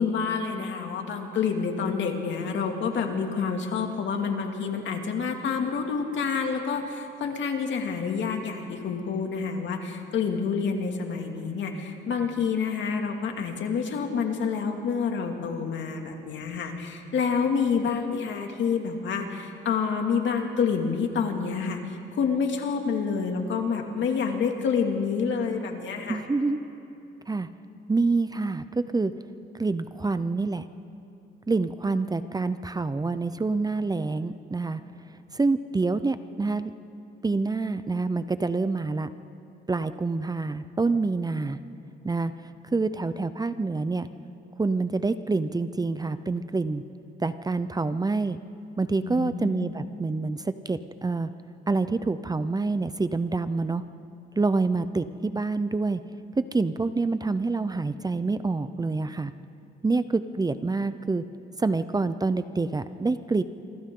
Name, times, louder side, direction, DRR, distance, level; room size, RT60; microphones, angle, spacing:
voice 1, 0.0-26.2 49.0-49.7, left 6 dB, 70° left, 3 dB, 2.5 m, -28 dB
voice 2, 26.1-26.6 27.3-27.5 27.9-29.1 29.5-30.6 31.5-34.8 35.3-36.7 37.2-39.1 39.7-41.6 42.0-42.3 42.7-44.1 44.6-46.8 47.2-48.4 48.8-51.3 51.7-53.8 54.4-56.0 56.4-59.3 59.8-61.2 61.6-63.4, right 3 dB, 20° right, 12 dB, 0.7 m, -27 dB
27.0 x 25.0 x 3.9 m, 2.7 s
cardioid pair, 85°, 20 cm